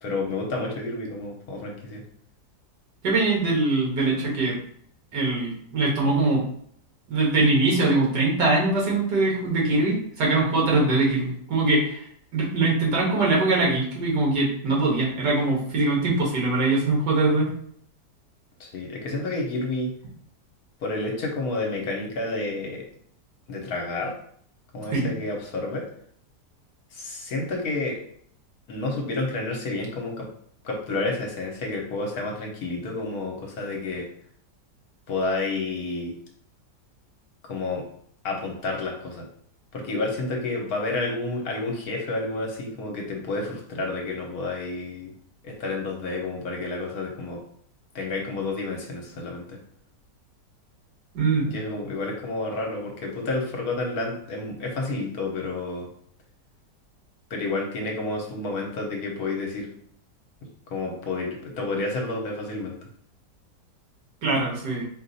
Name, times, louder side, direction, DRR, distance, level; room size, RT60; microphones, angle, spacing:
voice 1, 0.0-2.0 18.6-19.9 20.8-22.9 23.5-24.1 24.7-25.9 26.9-28.0 28.7-30.3 30.6-34.1 35.1-36.2 37.4-37.8 38.2-39.3 39.7-45.1 45.4-47.4 47.9-49.6 51.4-55.9 57.3-59.7 60.7-62.8, left 2 dB, 65° left, 1 dB, 1.3 m, -30 dB
voice 2, 3.0-4.6 5.1-6.4 7.1-12.0 12.3-17.5 24.9-25.1 51.1-51.5 64.2-64.8, right 2 dB, 80° right, -3 dB, 2.0 m, -22 dB
4.3 x 2.5 x 4.0 m, 0.63 s
omnidirectional pair, 1.8 m